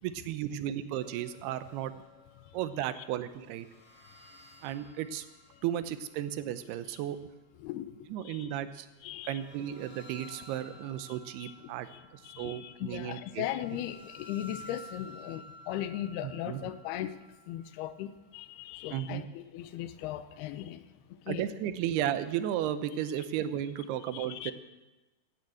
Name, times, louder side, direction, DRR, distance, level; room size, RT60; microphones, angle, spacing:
voice 1, 0.0-1.9 2.5-3.7 4.6-5.2 5.6-7.2 8.1-8.9 9.3-13.4 16.2-16.6 18.9-19.2 21.3-24.5, right 11 dB, 90° right, 12 dB, 2.8 m, -34 dB
sound 1, 0.9-3.1 3.4-6.5 9.2-18.6, left 1 dB, 30° left, 1.6 m, -54 dB
voice 2, 7.6-8.6 9.0-9.4 11.1-11.5 11.9-17.2 17.5-20.8 21.3-21.5 24.1-24.5, left 12 dB, 85° left, 12 dB, 2.7 m, -38 dB
15.5 x 9.3 x 8.5 m, 1.1 s
omnidirectional pair, 4.5 m